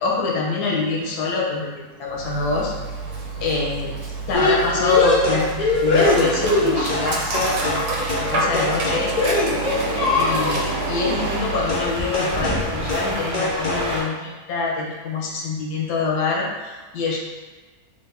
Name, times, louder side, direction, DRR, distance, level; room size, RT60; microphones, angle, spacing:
voice 1, 0.0-1.7 2.0-2.7 3.4-3.9 4.3-9.1 10.1-17.2, left 4 dB, 85° left, -2 dB, 1.3 m, -25 dB
sound 1, 0.6-14.0, right 2 dB, 55° right, 0.6 m, -31 dB
Dog, 2.1-12.0, right 2 dB, 80° right, 1.2 m, -29 dB
sound 2, 4.3-7.1 7.3-7.8 8.1-8.3 8.5-10.6 11.7-11.9 12.1-12.6 12.9-13.1 13.3-13.8, left 2 dB, 70° left, 0.4 m, -21 dB
3.7 x 2.3 x 3.4 m, 1.3 s
omnidirectional pair, 1.7 m